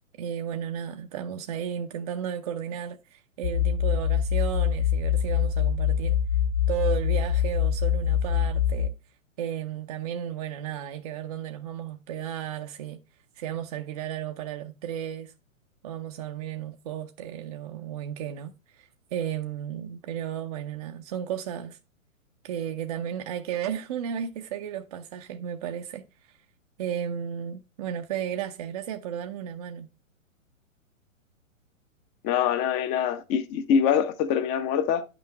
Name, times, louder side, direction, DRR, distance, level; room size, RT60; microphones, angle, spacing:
voice 1, 0.2-6.2 6.7-8.9 9.4-13.0 13.4-15.3 15.8-21.8 22.4-26.0 26.8-29.9, right 9 dB, 30° right, 0.5 m, -34 dB
sound 1, 3.4-8.9, left 9 dB, 65° left, 0.6 m, -24 dB
voice 2, 32.2-35.0, left 8 dB, 15° left, 0.5 m, -24 dB
10.0 x 6.0 x 3.1 m
figure-of-eight pair, 115°, 40 cm